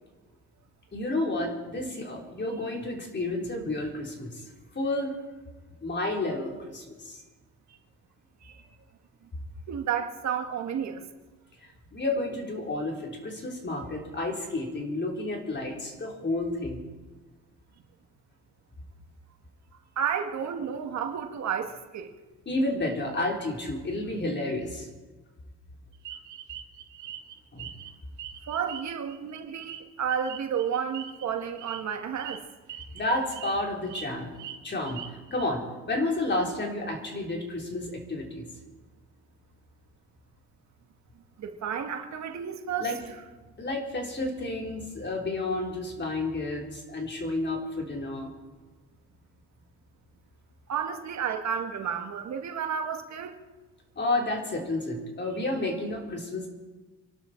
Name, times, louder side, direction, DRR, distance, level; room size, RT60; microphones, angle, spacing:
voice 1, 0.9-4.5 4.7-5.1 5.8-7.2 11.6-16.8 22.5-24.9 27.5-27.7 32.9-34.3 34.6-38.5 42.8-43.0 43.6-48.3 54.0-56.5, left 2 dB, 35° left, 0 dB, 4.1 m, -31 dB
voice 2, 9.7-11.0 19.9-22.1 28.5-32.4 41.4-42.9 50.7-53.4, right 7 dB, 65° right, 5 dB, 1.7 m, -31 dB
sound 1, 26.0-27.9 28.2-31.2 31.6-31.8 32.2-32.4 32.7-33.0 33.3-34.1 34.3-35.4, right 11 dB, 85° right, 1.5 m, -42 dB
26.0 x 12.0 x 4.5 m, 1.2 s
cardioid pair, 90°, 30 cm